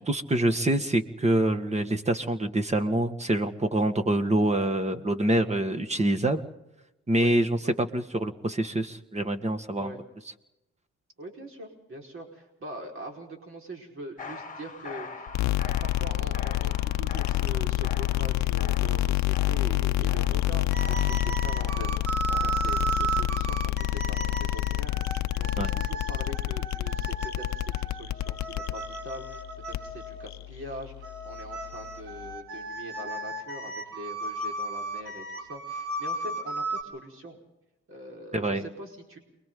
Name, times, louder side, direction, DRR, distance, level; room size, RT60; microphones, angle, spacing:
voice 1, 0.0-6.5 7.1-9.9 25.6-25.7 38.3-38.6, right 1 dB, 20° right, 7 dB, 1.9 m, -26 dB
voice 2, 11.2-15.3 15.6-37.4 37.9-39.2, right 1 dB, 45° right, 1 dB, 5.0 m, -43 dB
sound 1, 14.2-22.8, left 5 dB, 25° left, 1.7 m, -43 dB
sound 2, 15.3-32.3, left 15 dB, 65° left, 0.7 m, -28 dB
sound 3, 20.7-30.3 31.0-36.8, right 3 dB, 85° right, 4.7 m, -34 dB
29.5 x 23.0 x 3.9 m, 0.93 s
cardioid pair, 90°, 30 cm